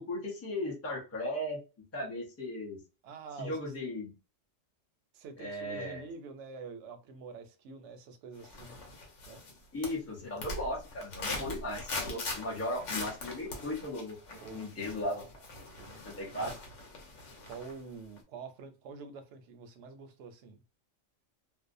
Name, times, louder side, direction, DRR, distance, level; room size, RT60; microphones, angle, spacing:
voice 1, 0.0-1.6 1.9-2.8 3.4-4.1 5.4-6.1 9.7-14.2 14.5-15.2 16.1-16.5, left 1 dB, 15° left, 0.5 m, -36 dB
voice 2, 3.0-3.7 5.1-8.8 9.3-9.4 14.3-15.0 15.6-16.6 17.5-20.6, right 5 dB, 70° right, 0.8 m, -47 dB
sound 1, 8.4-9.6 9.8-17.8 18.2-18.3, left 2 dB, 70° left, 1.1 m, -41 dB
2.6 x 2.0 x 2.5 m
omnidirectional pair, 1.3 m